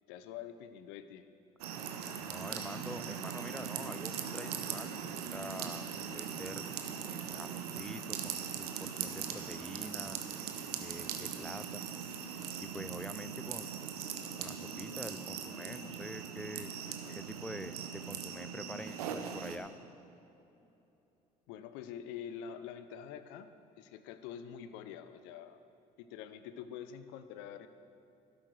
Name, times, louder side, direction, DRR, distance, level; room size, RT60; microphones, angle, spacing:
voice 1, 0.1-1.3 7.3-7.4 16.7-17.2 21.5-23.5 23.8-25.6 26.0-27.7, left 8 dB, 70° left, 11 dB, 0.7 m, -46 dB
sound 1, 1.6-19.6, right 7 dB, 85° right, 0.8 m, -40 dB
voice 2, 2.3-5.0 5.3-5.9 6.1-6.6 7.0-10.2 10.8-12.1 12.6-13.7 14.4-16.7 17.2-19.7, equal, 5° left, 13 dB, 0.5 m, -46 dB
12.5 x 11.5 x 4.7 m, 3.0 s
hypercardioid pair, 55°, 19 cm